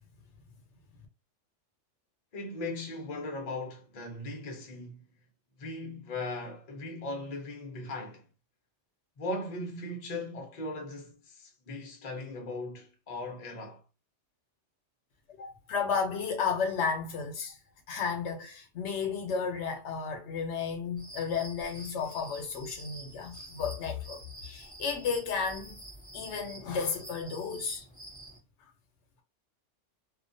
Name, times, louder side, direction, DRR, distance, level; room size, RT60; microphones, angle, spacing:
voice 1, 2.3-5.0 5.6-8.2 9.2-13.8, left 2 dB, 45° left, 0.6 m, -38 dB
voice 2, 15.4-17.6 17.9-25.8 26.1-27.8, left 5 dB, 70° left, 0.9 m, -33 dB
sound 1, 21.0-28.4, right 1 dB, 10° left, 1.2 m, -48 dB
2.4 x 2.2 x 2.5 m
omnidirectional pair, 1.2 m